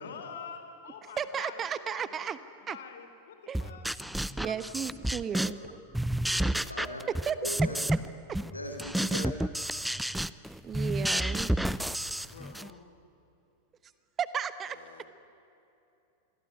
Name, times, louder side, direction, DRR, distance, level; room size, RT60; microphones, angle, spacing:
voice 1, 0.0-2.1 2.6-3.9 6.3-6.7 12.3-12.8 14.7-15.1, left 6 dB, 60° left, 7 dB, 3.8 m, -47 dB
voice 2, 1.2-2.4 2.7-2.8 3.5-3.6 4.4-5.6 7.3-7.4 7.9-8.0 10.6-11.5 14.2-14.8, right 7 dB, 25° right, 13 dB, 1.2 m, -34 dB
sound 1, 3.5-5.7 5.9-8.1 8.3-12.7, right 1 dB, ahead, 0.7 m, -30 dB
voice 3, 6.4-7.0 7.4-7.8 8.5-9.4, left 1 dB, 85° left, 5 dB, 3.5 m, -39 dB
27.5 x 22.5 x 9.6 m, 2.8 s
figure-of-eight pair, 90°, 0 cm